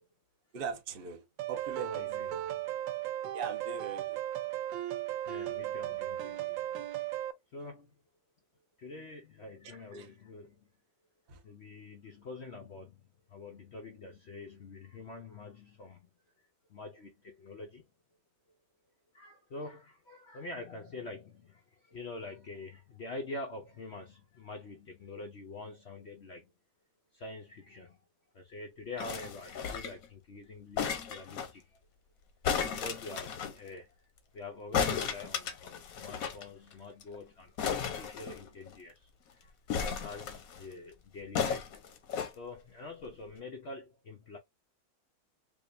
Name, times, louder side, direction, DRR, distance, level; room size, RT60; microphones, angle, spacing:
voice 1, 0.5-2.3 3.3-4.2 9.6-10.1 11.3-11.4, right 6 dB, 55° right, 0.6 m, -41 dB
sound 1, 1.4-7.3, right 13 dB, 75° right, 1.2 m, -36 dB
voice 2, 1.8-2.7 5.0-6.7 7.5-7.9 8.8-10.7 11.4-13.0 13.3-16.1 16.7-17.8 19.1-26.5 27.1-28.0 28.3-31.8 32.7-34.0 34.3-41.8 42.4-44.4, left 2 dB, 75° left, 0.6 m, -46 dB
sound 2, 29.0-30.1 30.8-31.5 32.4-33.5 34.7-36.4 36.7-36.8 37.0-37.2 37.6-38.8 39.7-40.6 41.3-42.3 43.0-43.1, left 7 dB, 60° left, 1.0 m, -34 dB
4.9 x 2.4 x 2.5 m
omnidirectional pair, 2.1 m